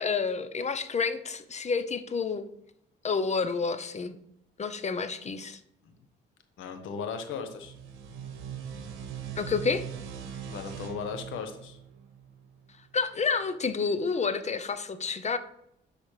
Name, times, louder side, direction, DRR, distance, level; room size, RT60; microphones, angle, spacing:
voice 1, 0.0-2.5 3.0-4.1 4.6-5.6 9.4-9.8 12.9-15.4, left 5 dB, 35° left, 11 dB, 0.7 m, -29 dB
voice 2, 6.6-7.7 10.5-11.8, left 5 dB, 85° left, 7 dB, 1.2 m, -37 dB
sound 1, 7.5-12.8, right 8 dB, 75° right, 1.1 m, -41 dB
12.0 x 4.1 x 3.3 m, 0.76 s
cardioid pair, 90°, 20 cm